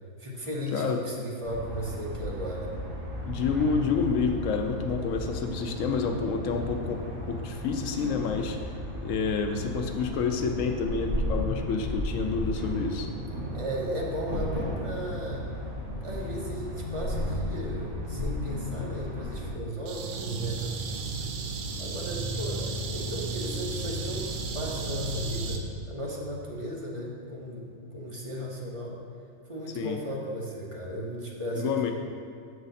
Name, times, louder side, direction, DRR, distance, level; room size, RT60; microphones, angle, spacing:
voice 1, 0.2-2.7 13.5-15.4 16.0-21.1 21.8-29.0 29.5-31.9, equal, 30° right, -3 dB, 0.7 m, -36 dB
sound 1, 1.4-19.5, left 1 dB, 65° right, 2.3 m, -34 dB
voice 2, 3.2-8.6 9.0-13.1 29.7-30.0 31.5-31.9, left 5 dB, 70° left, 4 dB, 0.9 m, -29 dB
sound 2, 19.9-25.6, right 3 dB, 90° right, 1.1 m, -33 dB
6.7 x 4.8 x 4.1 m, 2.3 s
omnidirectional pair, 1.5 m